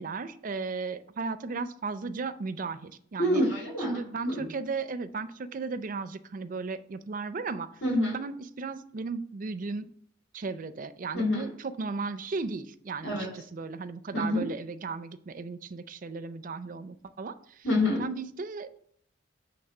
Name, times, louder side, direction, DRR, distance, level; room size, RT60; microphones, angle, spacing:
voice 1, 0.0-3.4 3.9-7.7 8.1-9.9 10.3-17.3 18.0-18.8, right 4 dB, 45° right, 13 dB, 0.5 m, -35 dB
voice 2, 3.2-3.9 4.2-4.4 7.8-8.2 11.1-11.5 13.0-13.3 14.1-14.4 17.6-18.0, left 1 dB, 75° left, -8 dB, 2.9 m, -26 dB
7.9 x 3.3 x 6.4 m, 0.63 s
head